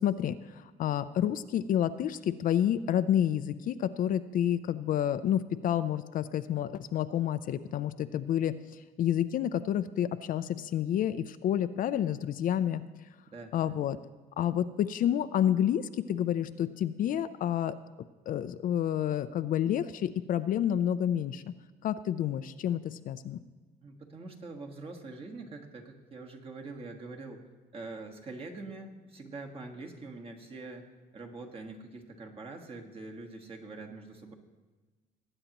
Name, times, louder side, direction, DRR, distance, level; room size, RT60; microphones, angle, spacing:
voice 1, 0.0-8.5 9.0-12.8 13.5-14.0 14.4-17.7 18.3-21.4 21.8-23.4, left 10 dB, 55° left, 12 dB, 0.5 m, -29 dB
voice 2, 13.3-13.8 23.8-27.4 27.7-30.9 31.1-34.3, right 3 dB, 35° right, 2 dB, 1.5 m, -44 dB
19.5 x 8.9 x 3.0 m, 1.3 s
cardioid pair, 110°, 17 cm